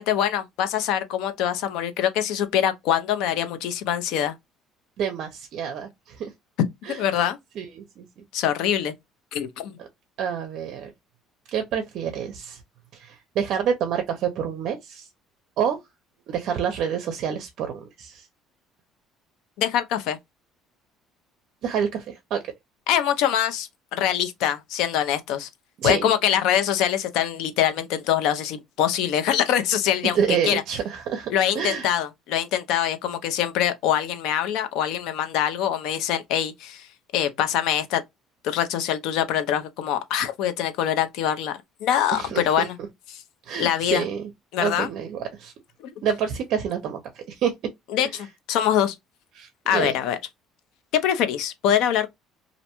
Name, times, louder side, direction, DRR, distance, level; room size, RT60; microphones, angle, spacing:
voice 1, 0.0-4.4 6.9-7.4 8.3-8.9 9.3-9.8 19.6-20.2 22.9-25.5 25.8-30.6 31.3-36.9 37.1-38.0 38.4-42.8 43.1-43.2 43.6-44.1 44.5-44.9 47.9-49.0 49.7-50.2 50.9-52.1, left 10 dB, 75° left, 0.5 m, -24 dB
voice 2, 5.0-6.3 6.8-7.0 7.6-8.1 9.8-9.9 10.2-10.9 11.5-12.6 12.9-15.1 15.6-15.8 16.3-18.2 21.6-22.4 25.8-26.1 30.1-31.9 42.1-42.7 43.5-44.3 44.6-45.5 46.0-47.5 49.4-49.9, right 7 dB, 60° right, 0.5 m, -28 dB
2.5 x 2.1 x 2.8 m
cardioid pair, 125°, 0 cm